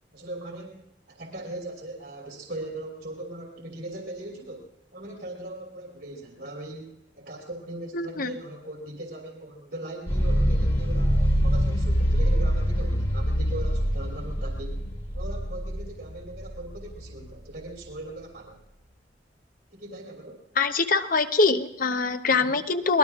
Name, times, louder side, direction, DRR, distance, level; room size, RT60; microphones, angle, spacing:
voice 1, 0.1-14.8 15.1-18.6 19.7-20.4 22.3-22.6, right 1 dB, 75° right, -1 dB, 3.1 m, -39 dB
voice 2, 7.9-8.3 20.6-23.0, left 4 dB, 55° left, 8 dB, 0.9 m, -23 dB
sound 1, 10.1-17.4, equal, 35° left, 1.7 m, -25 dB
24.5 x 19.0 x 2.5 m, 0.85 s
head